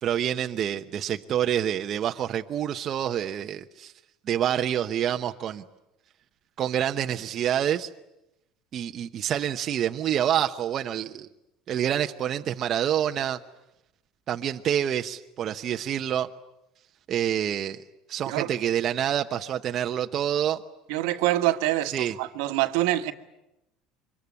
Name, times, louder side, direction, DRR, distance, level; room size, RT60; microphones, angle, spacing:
voice 1, 0.0-3.9 4.3-5.6 6.6-7.9 8.7-11.3 11.7-13.4 14.3-16.3 17.1-17.8 18.1-20.6 21.9-22.1, right 10 dB, 45° right, 0.9 m, -27 dB
voice 2, 20.9-23.1, right 15 dB, 80° right, 1.4 m, -25 dB
25.0 x 22.5 x 9.8 m
supercardioid pair, 125°, 0 cm